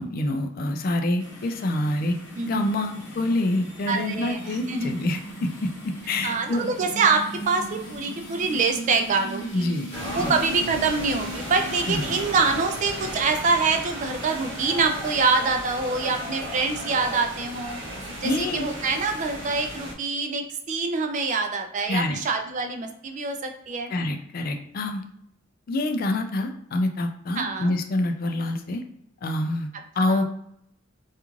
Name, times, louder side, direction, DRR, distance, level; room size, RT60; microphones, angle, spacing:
voice 1, 0.0-2.2 2.4-6.6 9.5-9.9 10.1-10.3 11.9-12.2 18.2-18.7 21.9-22.2 23.9-25.0 25.7-28.8 29.2-30.2, left 1 dB, 45° left, 6 dB, 0.3 m, -26 dB
sound 1, 1.2-12.2, right 1 dB, 60° left, 0.8 m, -38 dB
voice 2, 2.4-2.8 3.9-4.9 6.2-9.7 10.1-17.8 18.2-23.9 27.4-27.7 30.1-30.2, right 4 dB, 35° right, 5 dB, 0.3 m, -25 dB
sound 2, 9.9-19.9, equal, 65° right, 0.7 m, -35 dB
2.4 x 2.4 x 3.0 m, 0.72 s
head